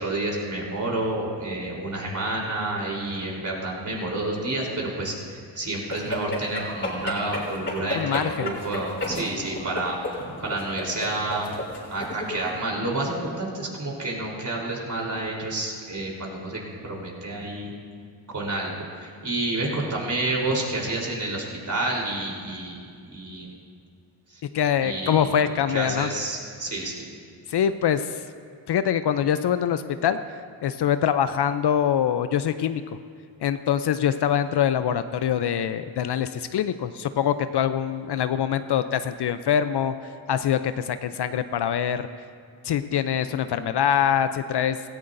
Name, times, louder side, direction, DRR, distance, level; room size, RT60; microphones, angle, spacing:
voice 1, 0.0-11.6 11.9-17.7 18.3-23.5 24.3-24.4 24.8-25.3 25.7-27.0, right 2 dB, 40° right, -2 dB, 3.7 m, -29 dB
sound 1, 5.9-12.5, left 1 dB, 25° left, 3.5 m, -33 dB
voice 2, 7.9-8.6 24.5-26.1 27.5-28.2 28.7-30.2 30.6-32.8 33.4-39.9 40.3-42.1 42.6-44.8, left 9 dB, 55° left, 11 dB, 0.6 m, -24 dB
17.5 x 14.0 x 2.6 m, 2.2 s
cardioid pair, 65°, 47 cm